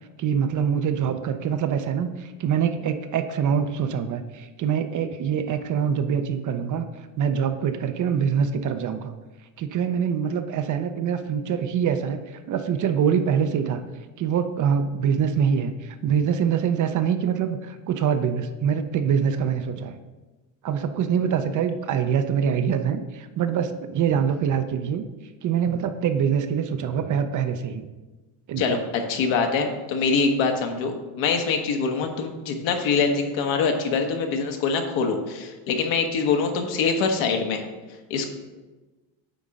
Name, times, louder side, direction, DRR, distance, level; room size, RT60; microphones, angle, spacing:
voice 1, 0.2-6.8 7.2-9.1 9.6-12.2 12.5-13.8 14.2-19.9 20.6-25.0 25.4-27.9 28.5-28.8, right 7 dB, 40° right, 9 dB, 0.6 m, -24 dB
voice 2, 28.6-37.6 38.1-38.3, left 5 dB, 70° left, 4 dB, 1.3 m, -24 dB
9.2 x 3.7 x 5.2 m, 1.2 s
cardioid pair, 110°, 48 cm